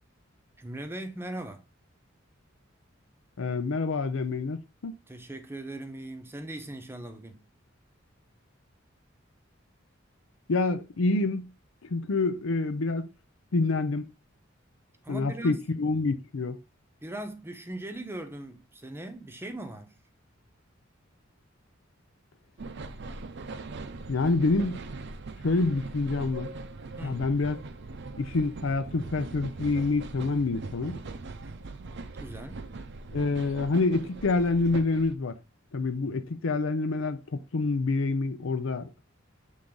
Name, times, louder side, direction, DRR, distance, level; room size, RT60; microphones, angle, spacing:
voice 1, 0.6-1.6 5.1-7.5 15.0-15.6 17.0-20.0 27.0-27.3 32.2-32.6, right 1 dB, 10° right, 0.8 m, -39 dB
voice 2, 3.4-5.0 10.5-11.5 11.8-13.1 13.5-14.1 15.1-16.6 24.1-24.8 25.4-26.5 27.0-27.6 28.2-31.0 33.1-35.4 35.7-38.9, left 3 dB, 70° left, 0.6 m, -27 dB
sound 1, 22.6-35.1, right 3 dB, 60° right, 0.6 m, -41 dB
7.3 x 3.8 x 3.8 m
head